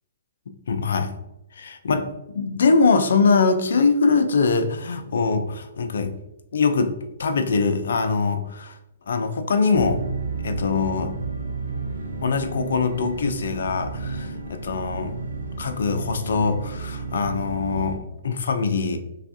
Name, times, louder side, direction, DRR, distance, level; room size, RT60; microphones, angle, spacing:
voice 1, 0.5-1.1 1.5-2.1 2.3-6.1 6.5-6.9 7.2-8.8 9.1-10.0 10.4-11.1 12.2-15.1 15.6-19.0, left 4 dB, 75° left, 8 dB, 0.4 m, -22 dB
sound 1, 9.7-18.0, right 4 dB, 90° right, 0.6 m, -32 dB
3.3 x 2.3 x 2.5 m, 0.87 s
hypercardioid pair, 150°, 0 cm